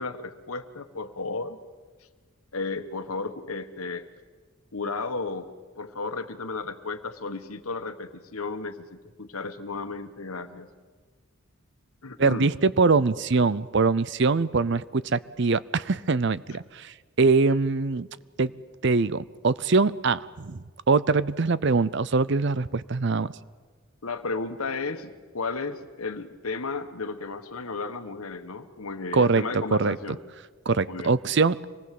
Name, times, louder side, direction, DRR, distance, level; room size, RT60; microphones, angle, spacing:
voice 1, 0.0-1.6 2.5-4.1 4.7-5.5 5.8-10.7 12.0-12.5 24.0-30.2 30.9-31.1, left 3 dB, 85° left, 9 dB, 1.4 m, -34 dB
voice 2, 12.2-18.1 18.4-18.5 18.8-23.3 29.1-29.4 29.7-30.0 30.7-31.7, right 4 dB, 55° right, 18 dB, 0.6 m, -23 dB
25.5 x 19.5 x 7.7 m, 1.4 s
head